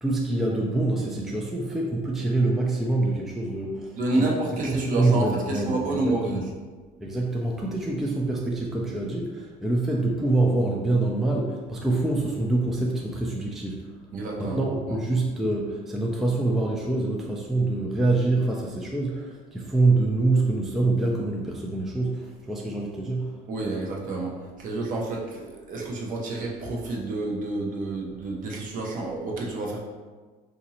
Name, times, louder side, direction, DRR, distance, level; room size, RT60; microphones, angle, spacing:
voice 1, 0.0-4.4 4.7-6.5 7.0-13.9 14.4-23.4, right 2 dB, ahead, -2 dB, 0.3 m, -25 dB
voice 2, 3.9-6.4 14.1-14.6 23.5-24.3 24.6-29.8, right 2 dB, 50° right, -2 dB, 0.8 m, -29 dB
3.9 x 2.5 x 2.8 m, 1.4 s
cardioid pair, 120°, 18 cm